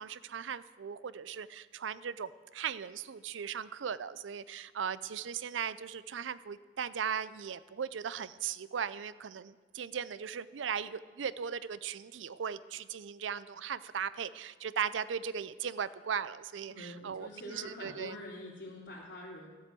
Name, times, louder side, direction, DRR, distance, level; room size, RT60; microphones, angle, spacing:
voice 1, 0.0-18.1, right 7 dB, 85° right, 16 dB, 0.5 m, -38 dB
voice 2, 16.7-19.5, left 1 dB, 70° left, -3 dB, 3.7 m, -45 dB
13.5 x 7.9 x 7.6 m, 1.4 s
head